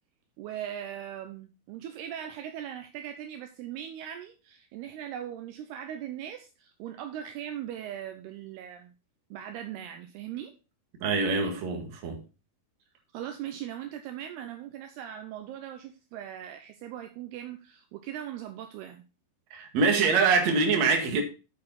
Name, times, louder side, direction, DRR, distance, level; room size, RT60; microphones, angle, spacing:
voice 1, 0.4-8.9 9.3-10.5 13.1-19.0, right 10 dB, 80° right, 2.6 m, -39 dB
voice 2, 11.0-12.2 19.5-21.2, right 4 dB, 50° right, 2.5 m, -24 dB
8.1 x 7.8 x 4.1 m
omnidirectional pair, 5.0 m